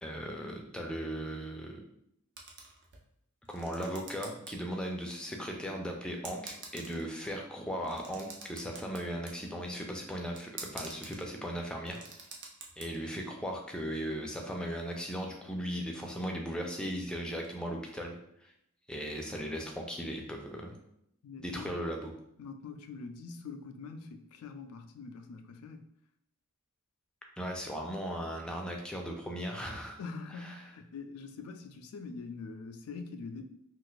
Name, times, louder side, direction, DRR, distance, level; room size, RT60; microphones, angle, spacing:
voice 1, 0.0-1.8 3.5-12.0 12.8-18.1 18.4-18.5 18.9-20.8 21.4-22.1 27.4-30.0 30.4-30.5, equal, 5° left, 1 dB, 0.4 m, -37 dB
sound 1, 2.4-3.1 3.4-4.5 4.8-4.9 5.7-5.8 6.2-7.2 7.8-9.4 10.4-11.2 11.6-12.8, right 4 dB, 55° right, 0.6 m, -46 dB
voice 2, 21.2-21.7 22.4-25.8 30.0-33.4, left 4 dB, 75° left, 7 dB, 0.3 m, -44 dB
2.5 x 2.3 x 3.9 m, 0.74 s
head